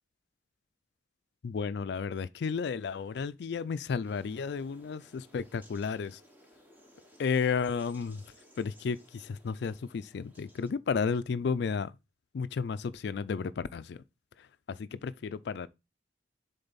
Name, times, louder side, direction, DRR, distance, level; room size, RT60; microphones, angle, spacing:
voice 1, 1.4-6.2 7.2-8.2 8.6-11.9 12.3-14.0 14.7-15.7, left 5 dB, 65° left, 0.4 m, -32 dB
sound 1, 4.0-10.7, equal, 10° right, 1.1 m, -59 dB
6.9 x 3.8 x 4.1 m
head